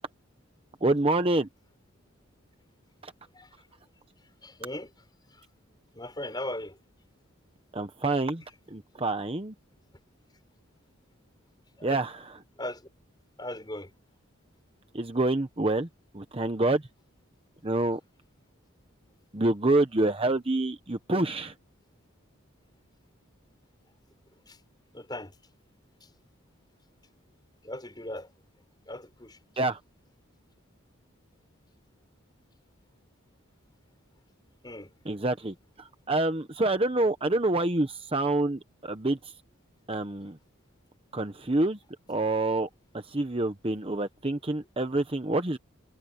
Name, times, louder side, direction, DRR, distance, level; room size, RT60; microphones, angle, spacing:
voice 1, 0.8-1.5 3.0-3.1 7.7-8.4 8.7-9.5 11.8-12.4 14.9-15.9 16.1-16.8 17.6-18.0 19.3-21.5 29.6-29.8 35.1-39.2 39.9-40.4 41.1-41.8 42.1-42.7 43.1-45.6, right 2 dB, 25° right, 0.9 m, -27 dB
voice 2, 4.4-4.9 5.9-6.8 11.8-12.0 12.6-12.8 13.4-13.9 24.5-24.6 24.9-25.3 27.6-28.3 28.9-29.4 34.6-34.9, left 1 dB, 20° left, 6.1 m, -38 dB
head